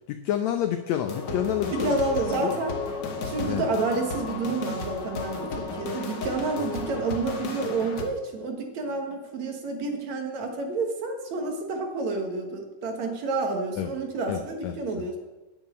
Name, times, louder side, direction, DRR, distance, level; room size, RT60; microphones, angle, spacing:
voice 1, 0.1-2.0 2.4-2.5 3.4-3.7 13.8-13.9 14.3-15.1, left 10 dB, 80° left, 7 dB, 1.6 m, -29 dB
sound 1, 1.1-8.0, left 4 dB, 50° left, 1.3 m, -33 dB
voice 2, 1.7-2.8 3.2-15.2, right 3 dB, 60° right, 4 dB, 2.6 m, -29 dB
10.0 x 7.4 x 8.7 m, 1.1 s
omnidirectional pair, 4.0 m